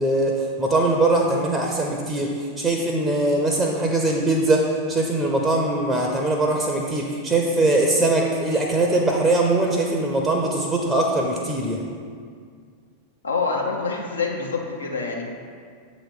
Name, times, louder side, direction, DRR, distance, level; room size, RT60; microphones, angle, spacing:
voice 1, 0.0-11.8, right 2 dB, 10° right, 0 dB, 0.6 m, -21 dB
voice 2, 13.2-15.2, left 4 dB, 75° left, 0 dB, 0.9 m, -26 dB
7.4 x 3.1 x 5.1 m, 2.1 s
figure-of-eight pair, 90°, 0 cm